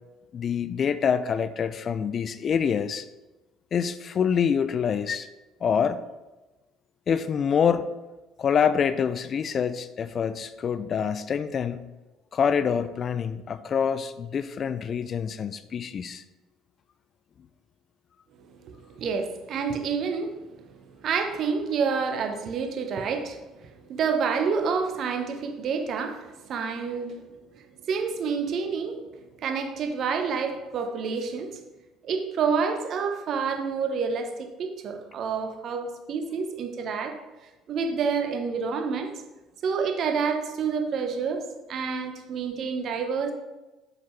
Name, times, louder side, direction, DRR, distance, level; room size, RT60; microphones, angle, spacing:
voice 1, 0.3-3.1 3.7-5.3 5.6-6.0 7.1-7.9 8.4-11.8 12.3-16.2, left 7 dB, 45° left, 13 dB, 0.4 m, -26 dB
voice 2, 18.4-27.3 27.5-31.6 32.0-37.2 37.7-39.1 39.6-41.4 41.7-43.3, right 5 dB, 55° right, 5 dB, 0.9 m, -29 dB
6.8 x 6.6 x 3.3 m, 1.1 s
hypercardioid pair, 55°, 0 cm